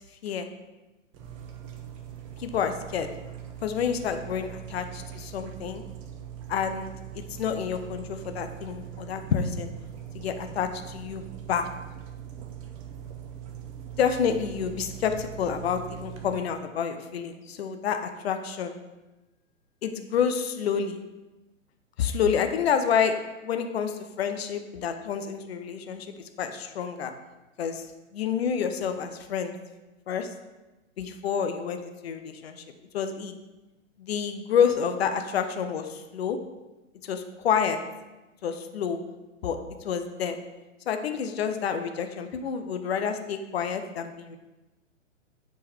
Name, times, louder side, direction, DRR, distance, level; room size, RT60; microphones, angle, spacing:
sound 1, 1.1-16.4, right 9 dB, 25° right, 0.7 m, -42 dB
voice 1, 2.4-3.1 3.6-5.8 6.5-9.7 10.1-11.7 14.0-18.8 19.8-21.0 22.0-23.2 23.4-27.1 27.6-27.9 28.1-29.6 30.1-30.3 31.0-32.6 32.9-33.4 34.0-36.4 37.0-37.8 38.4-39.0 39.4-40.4 40.9-44.4, left 7 dB, 50° left, 7 dB, 0.8 m, -28 dB
9.0 x 4.6 x 3.4 m, 1.1 s
figure-of-eight pair, 120°, 39 cm